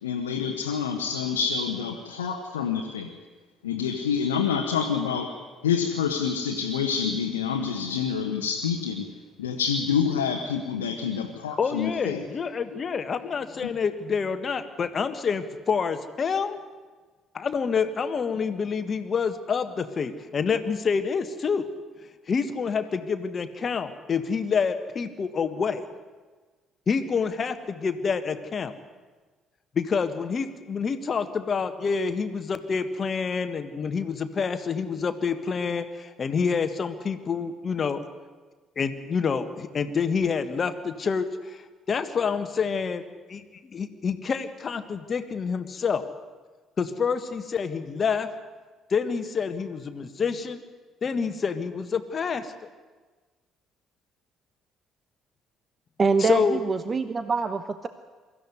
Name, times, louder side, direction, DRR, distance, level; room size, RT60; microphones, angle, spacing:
voice 1, 0.0-3.1 3.6-9.1 9.4-12.2 12.7-12.8 13.6-13.7, left 6 dB, 80° left, 1 dB, 1.4 m, -27 dB
voice 2, 11.6-16.6 17.3-21.7 22.3-25.8 26.9-28.7 29.7-38.0 38.8-41.6 41.9-43.0 43.3-46.0 46.8-48.3 48.9-50.6 51.0-52.5 56.2-56.6, left 5 dB, 40° left, 10 dB, 1.6 m, -27 dB
voice 3, 56.0-57.9, right 4 dB, 35° right, 11 dB, 1.0 m, -25 dB
24.0 x 14.5 x 9.7 m, 1.3 s
figure-of-eight pair, 50°, 0 cm